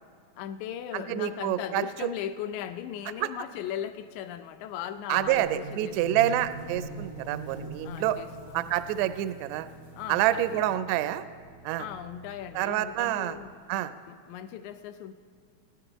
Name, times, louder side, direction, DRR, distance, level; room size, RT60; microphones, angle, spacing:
voice 1, 0.4-6.0 7.8-8.7 9.9-11.1 11.8-13.6 14.1-15.1, left 10 dB, 80° left, 10 dB, 1.9 m, -38 dB
voice 2, 0.9-1.8 5.1-8.2 8.5-9.7 10.1-11.2 11.6-11.8 12.5-13.4 13.7-13.9, right 13 dB, 80° right, 12 dB, 1.7 m, -27 dB
sound 1, 5.1-10.8, right 2 dB, 60° left, 3.9 m, -43 dB
sound 2, 6.1-13.5, right 1 dB, 35° left, 1.5 m, -50 dB
26.0 x 10.0 x 3.0 m, 2.1 s
omnidirectional pair, 3.7 m